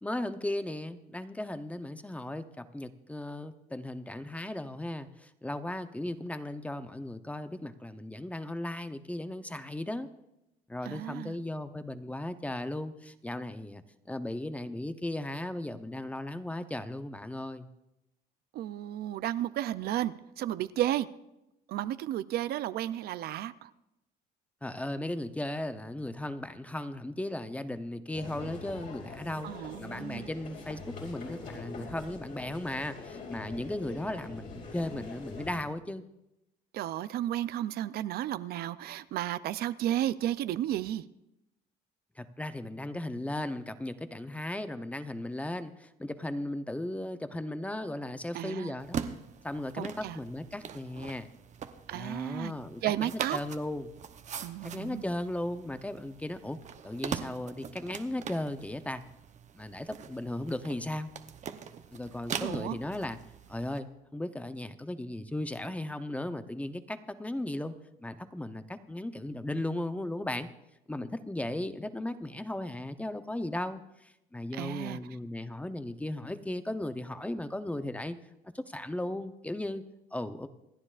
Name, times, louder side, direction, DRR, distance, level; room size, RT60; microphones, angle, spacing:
voice 1, 0.0-10.1 10.7-17.7 24.6-36.0 42.2-49.0 49.4-51.3 51.9-53.9 54.6-56.6 56.8-59.0 59.5-61.1 61.9-63.2 63.5-67.7 68.0-70.5 70.9-78.2 78.4-79.8 80.1-80.5, left 1 dB, 10° left, 10 dB, 0.7 m, -36 dB
voice 2, 10.9-11.3 18.5-21.1 21.7-23.7 29.4-30.3 36.7-41.0 48.3-48.7 49.7-50.2 51.9-52.5 52.8-53.4 54.4-55.0 62.4-62.8 74.5-75.0, right 13 dB, 70° right, 14 dB, 0.5 m, -33 dB
sound 1, 28.1-35.6, left 3 dB, 55° left, 4.9 m, -44 dB
sound 2, 48.8-63.8, right 7 dB, 45° right, 0.8 m, -42 dB
27.5 x 9.7 x 2.5 m, 0.89 s
cardioid pair, 110°, 17 cm